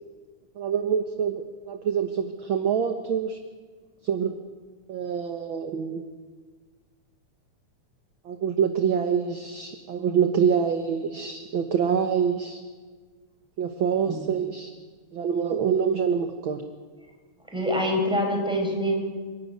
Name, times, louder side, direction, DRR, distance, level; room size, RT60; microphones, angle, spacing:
voice 1, 0.5-3.4 4.0-4.4 4.9-6.0 8.2-12.6 13.6-14.7 15.1-16.6, right 7 dB, 55° right, 7 dB, 1.5 m, -26 dB
voice 2, 17.5-18.9, equal, ahead, 0 dB, 5.8 m, -25 dB
28.5 x 13.0 x 9.4 m, 1.5 s
omnidirectional pair, 3.3 m